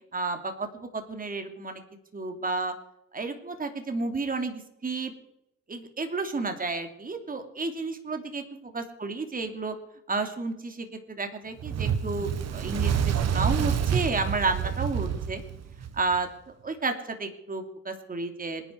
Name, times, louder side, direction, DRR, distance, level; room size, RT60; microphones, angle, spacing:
voice 1, 0.1-1.8 2.1-2.7 3.1-5.1 5.7-9.7 10.1-15.4 15.9-16.3 16.6-16.9 17.2-18.6, right 3 dB, 30° right, 6 dB, 2.9 m, -31 dB
Fire, 11.6-16.2, right 8 dB, 60° right, 1.5 m, -28 dB
26.5 x 10.5 x 4.6 m, 0.80 s
cardioid pair, 90°, 30 cm